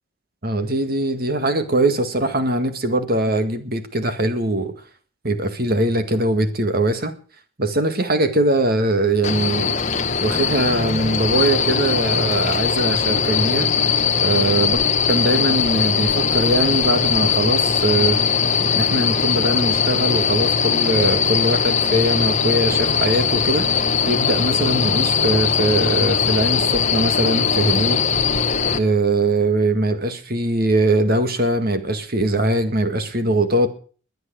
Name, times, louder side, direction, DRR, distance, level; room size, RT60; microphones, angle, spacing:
voice 1, 0.4-4.7 5.2-7.1 7.6-9.7 10.2-13.7 14.2-14.8 15.1-18.2 18.7-23.7 24.0-28.0 28.8-33.7, right 1 dB, 45° right, 9 dB, 1.8 m, -21 dB
sound 1, 9.2-28.8, left 6 dB, 35° left, 1.1 m, -20 dB
22.0 x 8.0 x 6.2 m, 0.41 s
head